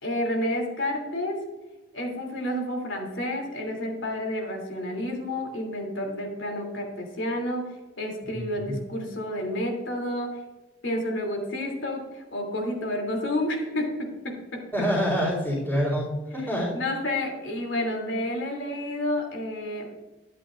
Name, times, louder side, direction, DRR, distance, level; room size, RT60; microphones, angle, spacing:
voice 1, 0.0-1.4 1.9-7.7 8.0-10.4 10.8-14.6 16.7-19.9, left 1 dB, 75° left, 1 dB, 3.0 m, -30 dB
voice 2, 8.2-8.7 14.7-16.7, equal, 10° left, -6 dB, 4.0 m, -27 dB
13.5 x 10.5 x 2.6 m, 1.1 s
head